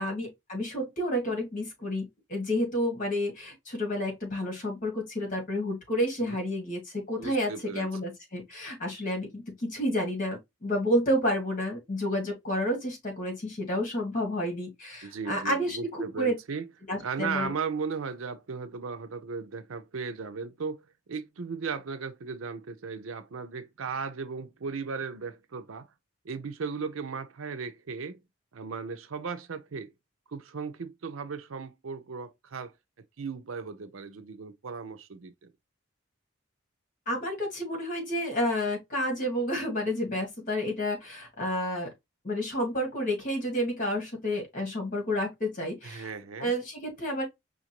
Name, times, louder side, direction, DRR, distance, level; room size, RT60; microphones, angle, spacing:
voice 1, 0.0-16.3 16.9-17.5 37.1-41.9 42.2-46.1 46.4-47.2, equal, 40° left, 1.9 m, -30 dB
voice 2, 7.2-7.9 15.0-16.7 17.0-25.9 26.2-28.2 28.5-29.9 30.3-32.7 33.2-35.3 45.8-46.6, right 5 dB, 90° right, 0.6 m, -36 dB
5.0 x 2.6 x 2.9 m
head